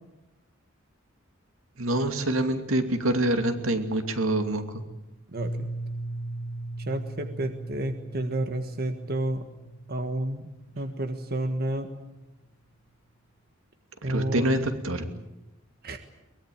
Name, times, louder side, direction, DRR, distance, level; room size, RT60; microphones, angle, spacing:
voice 1, 1.8-4.8 14.0-15.1, right 1 dB, 85° right, 7 dB, 2.7 m, -26 dB
voice 2, 5.3-5.7 6.8-9.5 9.9-10.4 10.7-11.9 14.0-14.7 15.8-16.0, right 1 dB, 50° right, 7 dB, 1.6 m, -30 dB
Piano, 5.4-11.0, right 2 dB, 55° left, 2.9 m, -38 dB
23.0 x 21.0 x 8.8 m, 0.98 s
head